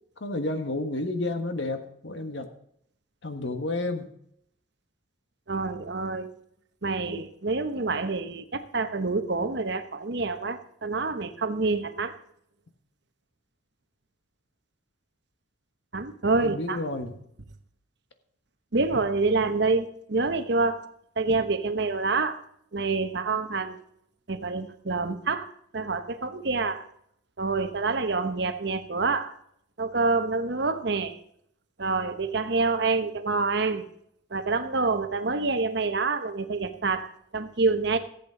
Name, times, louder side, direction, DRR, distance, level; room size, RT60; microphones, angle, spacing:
voice 1, 0.2-2.5 3.2-4.1 16.4-17.2, left 2 dB, 65° left, 8 dB, 1.4 m, -31 dB
voice 2, 5.5-6.3 6.8-12.1 15.9-16.8 18.7-20.9 21.2-22.4 22.7-23.8 24.3-26.9 27.4-29.3 29.8-31.2 31.8-33.8 34.3-38.0, right 3 dB, 60° right, 9 dB, 1.0 m, -27 dB
14.5 x 8.3 x 5.1 m, 0.70 s
head